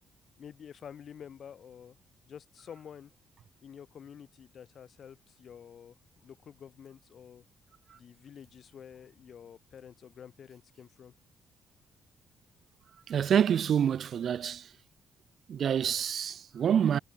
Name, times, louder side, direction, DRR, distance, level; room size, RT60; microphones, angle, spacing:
voice 1, 0.4-2.0 2.3-3.1 3.6-5.9 6.2-7.4 7.9-11.1, left 8 dB, 55° left, 3.1 m, -49 dB
voice 2, 13.1-14.7 15.5-17.0, right 8 dB, 60° right, 0.6 m, -27 dB
cardioid pair, 90°, 0 cm